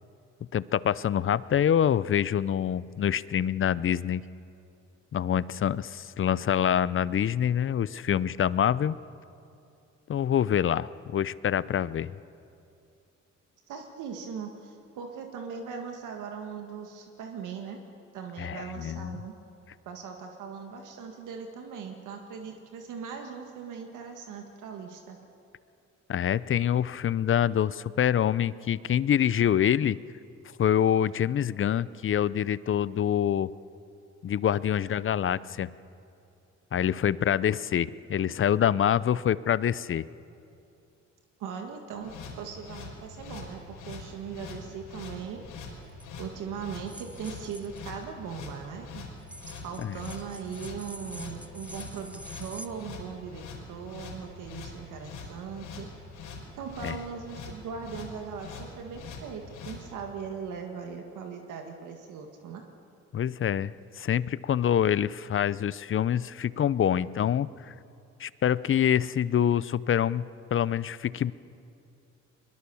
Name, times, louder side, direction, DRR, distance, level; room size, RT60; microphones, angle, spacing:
voice 1, 0.5-4.2 5.1-8.9 10.1-12.1 18.4-19.2 26.1-30.0 30.6-33.5 34.2-35.7 36.7-40.1 49.8-50.0 56.8-57.0 63.1-67.7 68.2-71.3, left 9 dB, 45° left, 19 dB, 0.6 m, -26 dB
voice 2, 13.7-17.8 18.1-19.3 19.9-25.2 41.4-45.4 46.2-49.0 49.5-55.9 56.6-62.6, right 6 dB, 85° right, 4 dB, 1.8 m, -39 dB
sound 1, 42.0-59.8, left 4 dB, 85° left, 4.8 m, -43 dB
sound 2, 45.9-46.0 46.9-47.8 49.2-52.7, right 1 dB, 5° right, 1.0 m, -46 dB
22.0 x 21.5 x 7.1 m, 2.7 s
cardioid pair, 90°, 30 cm